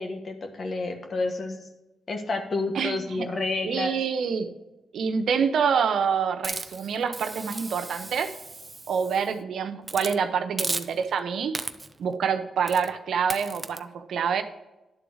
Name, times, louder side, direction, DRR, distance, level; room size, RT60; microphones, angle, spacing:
voice 1, 0.0-1.6 2.1-3.9, left 3 dB, 50° left, 4 dB, 1.5 m, -30 dB
voice 2, 2.7-3.3 3.6-4.5 4.9-8.3 8.9-11.6 12.0-14.4, right 6 dB, 75° right, 7 dB, 0.8 m, -26 dB
Hiss, 6.4-9.3 9.8-10.2 10.6-11.2 11.5-12.0 12.7-12.9 13.3-13.8, right 2 dB, 25° right, 0.5 m, -35 dB
11.0 x 4.0 x 6.4 m, 1.0 s
cardioid pair, 75°, 0 cm